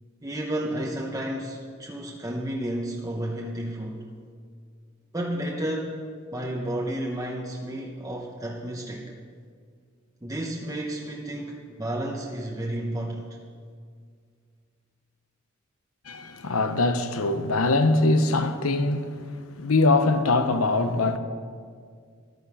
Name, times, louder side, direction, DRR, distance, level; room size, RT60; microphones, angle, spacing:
voice 1, 0.2-4.1 5.1-6.0 6.3-9.1 10.2-13.3, right 1 dB, 15° right, 0.9 m, -31 dB
voice 2, 16.1-19.3 19.5-21.2, left 2 dB, 85° left, 0.9 m, -22 dB
14.0 x 11.5 x 4.9 m
head